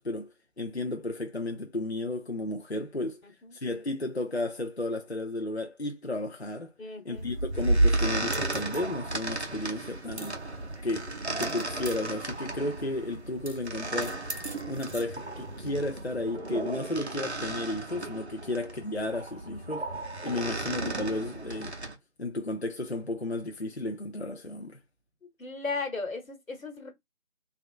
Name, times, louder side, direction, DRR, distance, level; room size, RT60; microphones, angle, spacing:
voice 1, 0.0-3.2 3.5-6.7 7.1-10.3 10.8-14.2 14.7-19.9 20.2-21.7 22.2-24.8, left 2 dB, 55° left, 0.5 m, -33 dB
voice 2, 3.2-3.6 6.8-7.3 18.4-18.6 25.2-26.9, left 4 dB, 80° left, 1.3 m, -37 dB
sound 1, 7.1-22.0, right 2 dB, 55° right, 0.7 m, -33 dB
3.4 x 2.5 x 2.4 m
figure-of-eight pair, 180°, 40 cm